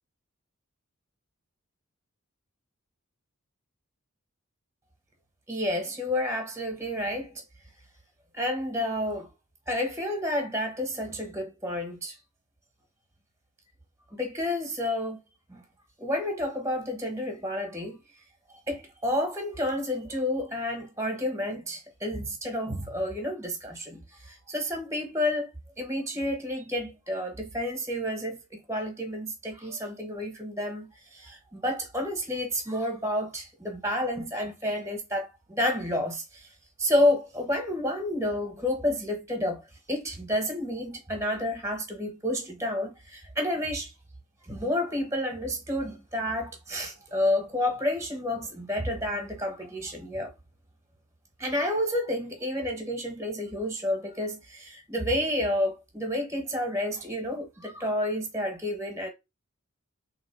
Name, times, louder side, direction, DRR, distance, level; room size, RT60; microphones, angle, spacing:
voice 1, 5.5-7.3 8.3-9.3 9.7-12.2 14.1-15.2 15.5-15.6 16.0-18.0 18.5-36.5 36.8-39.6 39.9-43.9 44.5-50.3 51.4-59.1, left 1 dB, 15° right, 1.0 m, -30 dB
3.6 x 2.8 x 4.5 m
head